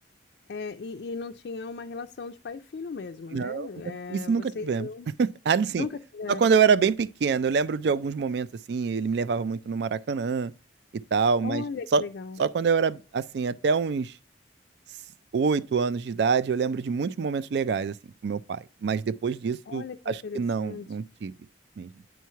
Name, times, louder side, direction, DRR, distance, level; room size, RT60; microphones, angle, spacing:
voice 1, 0.5-5.1 5.8-6.5 11.4-12.4 19.7-20.9, left 4 dB, 60° left, 0.4 m, -37 dB
voice 2, 3.3-3.7 4.1-4.9 5.2-5.9 6.3-10.5 11.1-11.6 11.9-12.0 12.4-14.1 15.3-17.9 18.2-21.3 21.8-21.9, right 5 dB, 60° right, 0.3 m, -26 dB
9.1 x 3.1 x 5.6 m
head